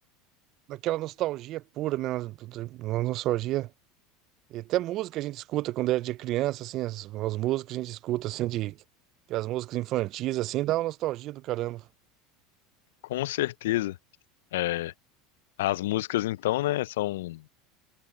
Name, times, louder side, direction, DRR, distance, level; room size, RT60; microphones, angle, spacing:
voice 1, 0.7-3.7 4.5-8.8 9.3-11.8, right 16 dB, 50° right, 0.4 m, -30 dB
voice 2, 13.1-14.0 14.5-14.9 15.6-17.4, left 16 dB, 90° left, 0.4 m, -28 dB
supercardioid pair, 120°, 0 cm